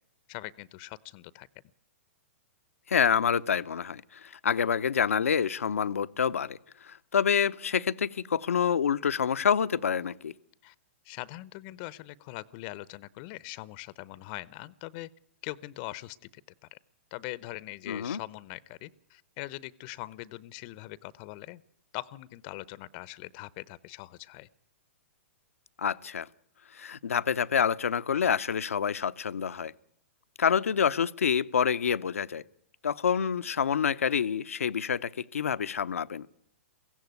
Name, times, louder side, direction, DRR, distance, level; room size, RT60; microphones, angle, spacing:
voice 1, 0.3-1.5 10.6-10.7 11.0-15.1 15.4-16.2 16.7-16.8 17.1-21.6 21.9-24.5, left 19 dB, 45° left, 0.8 m, -42 dB
voice 2, 2.9-6.6 6.8-10.3 17.9-18.2 25.8-26.3 26.7-29.7 30.4-32.4 32.8-36.3, left 7 dB, 85° left, 0.8 m, -27 dB
22.5 x 16.0 x 9.4 m
hypercardioid pair, 125°, 7 cm